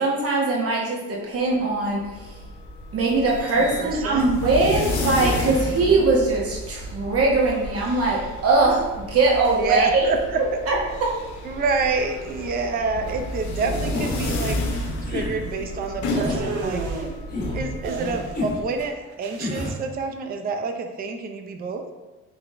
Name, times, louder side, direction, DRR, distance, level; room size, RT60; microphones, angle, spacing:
voice 1, 0.0-2.0 2.9-10.0 10.7-11.1, right 3 dB, 50° right, -3 dB, 1.1 m, -21 dB
sound 1, 1.8-18.9, left 1 dB, 70° left, 0.7 m, -31 dB
voice 2, 3.6-4.3 4.6-4.9 5.8-6.1 9.5-10.4 11.4-17.1 17.5-21.8, right 4 dB, 30° right, 5 dB, 0.4 m, -28 dB
sound 2, 13.9-14.2 15.0-15.3 16.1-16.4 17.3-17.6 18.3-18.6 19.4-19.8, left 2 dB, 30° left, 1.4 m, -29 dB
sound 3, 16.1-17.1 17.8-18.6 18.8-19.6, right 4 dB, 85° right, 0.6 m, -32 dB
3.6 x 3.4 x 2.5 m, 1.2 s
cardioid pair, 90°, 30 cm